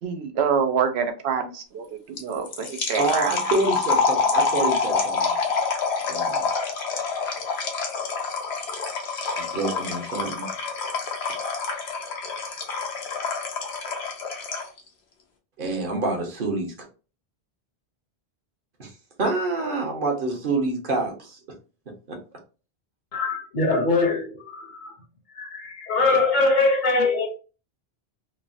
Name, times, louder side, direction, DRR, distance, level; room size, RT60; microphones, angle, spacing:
voice 1, 0.0-3.3, right 6 dB, 85° right, 0.8 m, -26 dB
sound 1, 2.2-14.8, left 4 dB, 90° left, 0.9 m, -27 dB
voice 2, 2.9-5.4 6.1-6.5 9.4-10.5 15.6-16.7 18.8-18.9 19.2-21.4 22.1-22.2, right 2 dB, 55° right, 1.0 m, -27 dB
voice 3, 23.1-24.9 25.3-27.3, left 3 dB, 55° left, 0.7 m, -22 dB
3.1 x 2.0 x 2.5 m
omnidirectional pair, 1.1 m